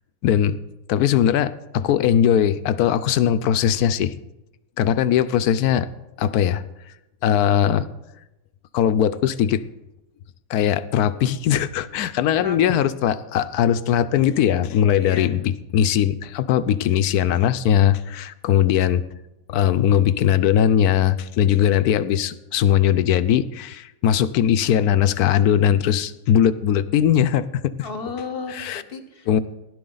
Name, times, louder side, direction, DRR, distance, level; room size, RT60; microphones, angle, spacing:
voice 1, 0.2-0.6 0.9-4.1 4.8-5.9 6.2-6.6 7.2-7.9 8.7-9.6 10.5-19.0 19.5-27.5 28.5-28.8 29.3-29.4, left 10 dB, 75° left, 14 dB, 1.1 m, -19 dB
voice 2, 12.3-12.9 15.0-15.5 27.8-29.4, left 4 dB, 40° left, 8 dB, 1.0 m, -33 dB
16.0 x 11.5 x 3.9 m, 0.94 s
omnidirectional pair, 1.8 m